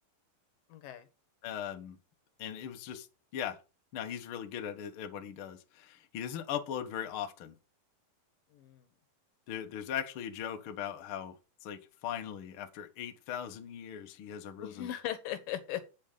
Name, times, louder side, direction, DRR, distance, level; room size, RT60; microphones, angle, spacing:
voice 1, 0.7-1.1 8.5-8.8 14.6-15.8, left 12 dB, 80° left, 2.9 m, -38 dB
voice 2, 1.4-2.0 2.4-3.1 3.3-3.6 3.9-7.5 9.5-14.9, left 9 dB, 60° left, 1.4 m, -39 dB
8.7 x 7.1 x 5.2 m
omnidirectional pair, 4.0 m